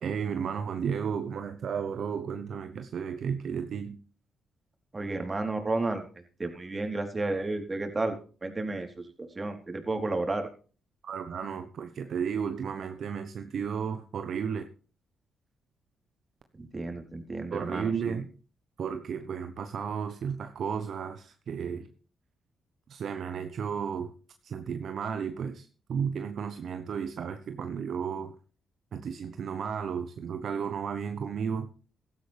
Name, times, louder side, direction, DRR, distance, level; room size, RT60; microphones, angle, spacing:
voice 1, 0.0-4.0 11.0-14.6 17.5-18.3 18.8-21.9 22.9-24.1 24.4-28.3 28.9-31.7, right 7 dB, 65° right, 8 dB, 1.0 m, -33 dB
voice 2, 4.9-6.1 6.4-10.5 16.6-18.2, right 2 dB, 30° right, 5 dB, 3.9 m, -32 dB
16.0 x 12.5 x 3.5 m, 0.38 s
hypercardioid pair, 45°, 0 cm